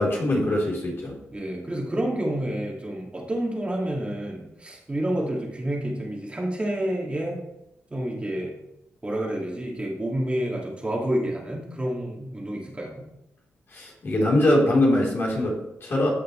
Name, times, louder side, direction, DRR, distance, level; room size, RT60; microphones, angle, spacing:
voice 1, 0.0-1.2 13.7-16.1, left 1 dB, 50° left, -3 dB, 4.0 m, -22 dB
voice 2, 1.3-7.4 7.9-8.5 9.0-13.0, right 1 dB, 20° right, -3 dB, 2.5 m, -29 dB
14.5 x 6.5 x 3.3 m, 0.86 s
cardioid pair, 75°, 5 cm